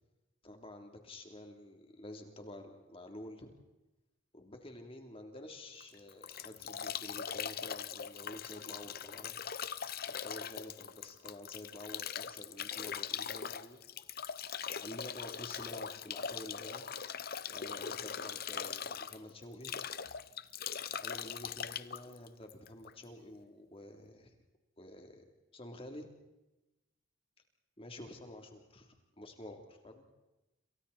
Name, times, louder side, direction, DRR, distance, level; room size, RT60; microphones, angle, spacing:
voice 1, 0.4-3.5 4.3-9.4 10.0-13.8 14.8-16.8 17.5-19.8 21.0-24.3 24.8-25.2 25.5-26.1 27.8-30.0, left 1 dB, 30° left, 4 dB, 3.3 m, -49 dB
Bathtub (filling or washing) / Drip / Trickle dribble, 5.8-23.0, left 7 dB, 55° left, 0.9 m, -41 dB
29.5 x 28.5 x 4.3 m, 1.0 s
head